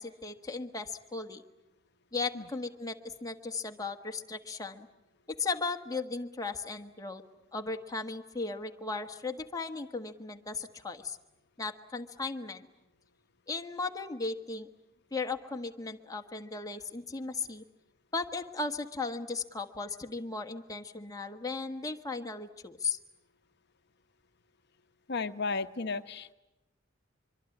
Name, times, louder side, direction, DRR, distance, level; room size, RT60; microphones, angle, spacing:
voice 1, 0.0-1.4 2.1-4.9 5.3-7.2 7.5-11.2 11.6-12.7 13.5-14.7 15.1-17.6 18.1-23.0, left 4 dB, 20° left, 4 dB, 1.5 m, -36 dB
voice 2, 25.1-26.3, left 4 dB, 55° left, 10 dB, 1.0 m, -34 dB
25.0 x 24.0 x 9.8 m, 0.96 s
head